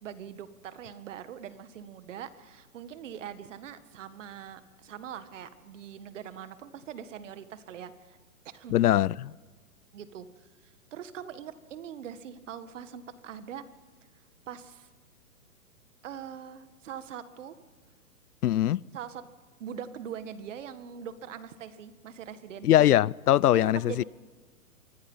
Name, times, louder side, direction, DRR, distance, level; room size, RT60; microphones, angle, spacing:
voice 1, 0.0-8.2 8.5-8.8 9.9-13.7 14.5-14.9 16.0-17.6 18.9-19.2 19.6-22.7 23.5-24.0, right 9 dB, 55° right, 1.8 m, -42 dB
voice 2, 8.7-9.3 18.4-18.8 22.6-24.0, left 12 dB, 85° left, 0.6 m, -22 dB
26.0 x 24.5 x 5.6 m
hypercardioid pair, 150°, 45 cm